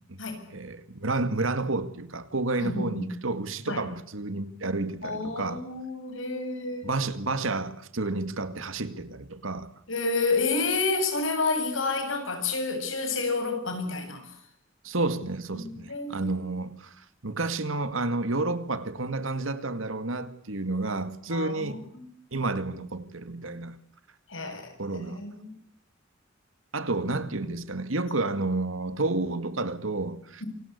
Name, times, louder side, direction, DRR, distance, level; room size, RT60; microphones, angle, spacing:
voice 1, 0.5-5.6 6.8-9.7 14.8-21.9 22.3-23.8 24.8-25.2 26.7-30.4, right 2 dB, 80° right, 2.2 m, -30 dB
voice 2, 2.6-3.1 3.7-3.8 5.0-7.0 9.9-14.3 15.5-16.3 21.3-22.1 24.3-25.4, left 3 dB, 70° left, 7.6 m, -30 dB
27.5 x 25.5 x 8.3 m
head